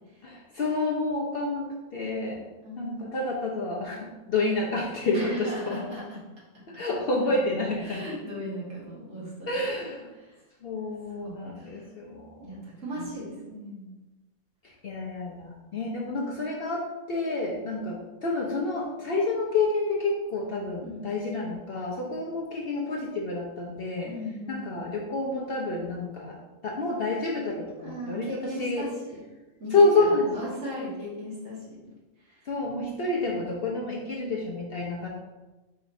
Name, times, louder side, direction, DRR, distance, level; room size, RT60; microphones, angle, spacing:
voice 1, 0.2-1.7 1.9-2.4 2.8-5.8 6.7-8.1 9.5-10.1 10.6-12.5 14.8-18.0 18.2-24.1 24.5-26.4 26.6-28.3 28.6-28.8 29.7-30.3 32.5-35.1, left 2 dB, 55° left, -2 dB, 0.7 m, -28 dB
voice 2, 2.6-3.1 5.1-6.2 6.5-6.8 7.8-9.8 10.1-10.4 11.2-11.9 12.4-13.9 17.7-17.9 20.8-21.2 24.1-24.8 27.8-29.2 29.6-31.8 32.3-32.5, left 1 dB, 65° right, -7 dB, 2.1 m, -38 dB
4.8 x 4.2 x 2.6 m, 1.1 s
omnidirectional pair, 1.4 m